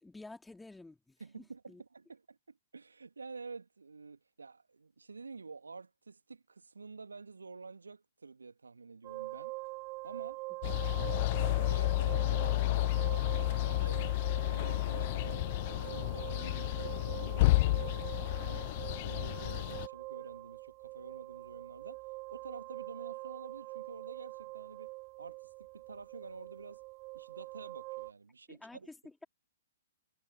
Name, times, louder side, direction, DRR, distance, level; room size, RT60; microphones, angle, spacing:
voice 1, 0.0-1.8 28.5-29.2, left 2 dB, 5° left, 2.4 m, -51 dB
voice 2, 1.2-9.6 10.0-10.4 10.9-18.7 19.0-22.0 22.3-26.8 27.1-28.9, right 4 dB, 75° right, 1.9 m, -50 dB
sound 1, 9.0-28.1, right 25 dB, 30° right, 0.7 m, -44 dB
sound 2, 10.6-19.9, left 19 dB, 40° left, 0.3 m, -31 dB
figure-of-eight pair, 120°, 0 cm